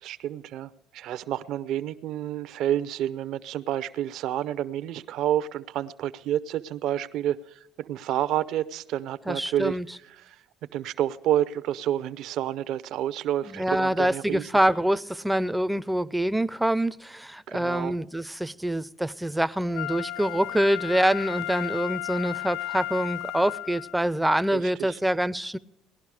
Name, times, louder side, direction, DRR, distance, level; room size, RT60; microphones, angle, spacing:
voice 1, 0.0-9.8 10.2-10.4 10.7-14.5 17.5-17.9 24.5-25.0, right 11 dB, 70° right, 0.6 m, -29 dB
voice 2, 9.3-9.9 13.5-25.6, right 1 dB, 5° right, 0.4 m, -25 dB
Wind instrument woodwind instrument, 19.7-24.0 24.5-24.6, left 15 dB, 75° left, 0.4 m, -34 dB
18.5 x 11.5 x 4.9 m
cardioid pair, 100°, 0 cm